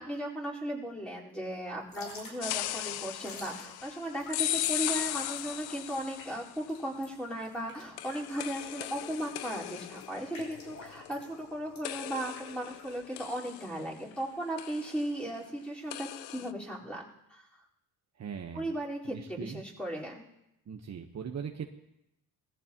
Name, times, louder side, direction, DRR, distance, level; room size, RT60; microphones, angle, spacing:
voice 1, 0.0-17.0 17.3-17.4 18.5-20.2, right 1 dB, 5° left, -5 dB, 4.3 m, -36 dB
Drip / Trickle dribble, 1.8-13.4, left 2 dB, 60° left, 5.3 m, -51 dB
sound 1, 2.4-6.6 8.0-11.5 11.8-14.2 14.6-15.1 15.9-16.5, left 14 dB, 85° left, 0.6 m, -37 dB
voice 2, 18.2-18.8 19.0-19.6 20.7-21.7, right 7 dB, 45° right, 4 dB, 1.1 m, -40 dB
20.5 x 14.5 x 3.0 m, 0.86 s
cardioid pair, 90°, 37 cm